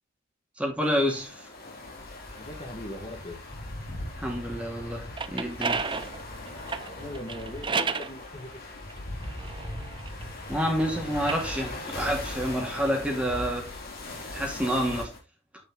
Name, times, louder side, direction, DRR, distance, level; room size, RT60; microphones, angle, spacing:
voice 1, 0.6-1.5 4.2-5.8 10.5-13.7 14.3-15.1, equal, 5° right, 2.7 m, -28 dB
sound 1, 0.8-15.2, left 2 dB, 50° left, 3.0 m, -39 dB
voice 2, 2.4-3.4 7.0-8.7, left 1 dB, 30° left, 1.4 m, -40 dB
sound 2, 4.9-8.1 8.9-10.6 11.1-13.4, right 5 dB, 25° right, 0.6 m, -34 dB
9.7 x 5.5 x 3.7 m
head